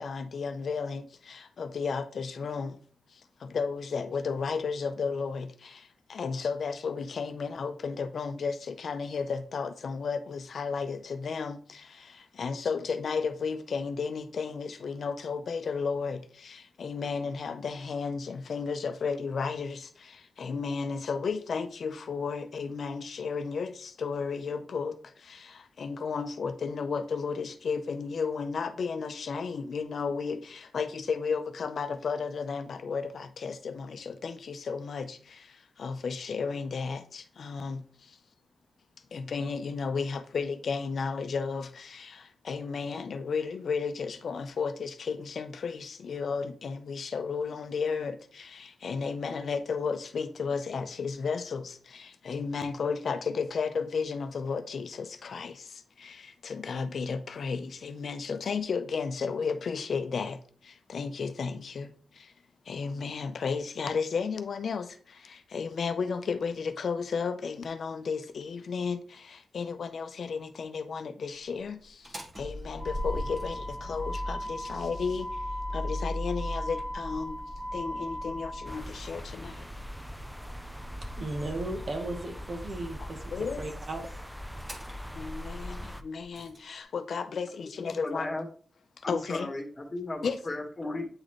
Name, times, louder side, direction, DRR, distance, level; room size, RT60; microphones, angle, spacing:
voice 1, 0.0-2.8 3.1-38.2 39.1-62.3 62.7-75.4 75.7-77.4 77.7-79.7 83.0-83.7 85.1-88.3 89.0-89.5 90.2-90.4, left 5 dB, 65° left, 0.6 m, -33 dB
Motor vehicle (road), 71.9-86.6, left 1 dB, 30° right, 1.6 m, -38 dB
sound 1, 78.6-86.0, equal, ahead, 0.4 m, -43 dB
voice 2, 81.0-84.1, right 2 dB, 50° right, 1.2 m, -36 dB
voice 3, 87.8-88.5 89.0-91.1, left 2 dB, 25° left, 1.6 m, -35 dB
8.8 x 4.0 x 3.1 m
wide cardioid pair, 115°, 0 cm